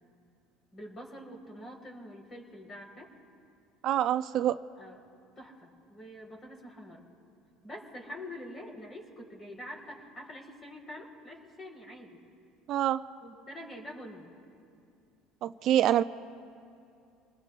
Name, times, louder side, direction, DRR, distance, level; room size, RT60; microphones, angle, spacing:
voice 1, 0.7-3.1 4.8-5.0 5.4-7.1 7.6-12.2 13.2-14.3, left 1 dB, 35° left, 1 dB, 4.2 m, -45 dB
voice 2, 3.8-4.6 12.7-13.0 15.4-16.0, right 11 dB, 55° right, 13 dB, 0.4 m, -25 dB
26.5 x 20.0 x 2.5 m, 2.5 s
hypercardioid pair, 70°, 0 cm